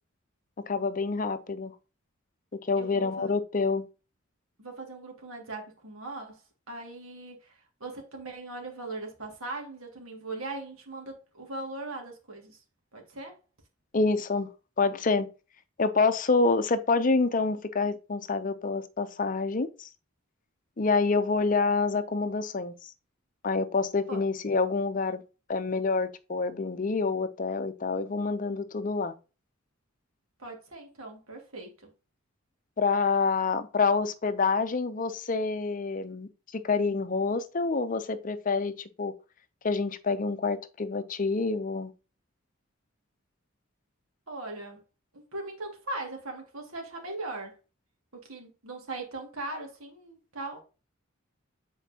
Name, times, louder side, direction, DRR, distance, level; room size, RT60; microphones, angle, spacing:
voice 1, 0.7-1.7 2.6-3.9 13.9-14.5 14.8-15.3 15.8-19.9 20.8-22.9 23.4-25.2 25.5-29.1 32.8-39.1 39.6-41.9, left 4 dB, 40° left, 0.6 m, -27 dB
voice 2, 2.8-3.3 4.6-12.6 12.9-13.4 24.1-24.2 30.4-31.9 44.3-44.8 45.1-47.6 48.1-50.6, right 2 dB, 85° right, 2.2 m, -40 dB
8.0 x 4.5 x 2.8 m
head